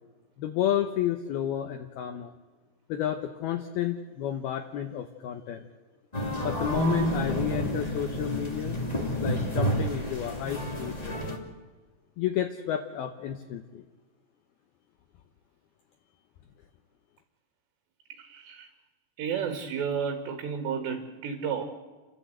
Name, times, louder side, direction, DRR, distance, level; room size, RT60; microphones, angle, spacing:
voice 1, 0.4-2.3 2.9-5.7 6.4-11.3 12.2-13.8, left 10 dB, 70° left, 2.6 m, -31 dB
sound 1, 6.1-11.4, equal, 15° left, 1.3 m, -29 dB
voice 2, 18.1-18.7 19.2-21.7, right 7 dB, 75° right, 3.9 m, -32 dB
29.5 x 12.5 x 8.1 m
omnidirectional pair, 5.2 m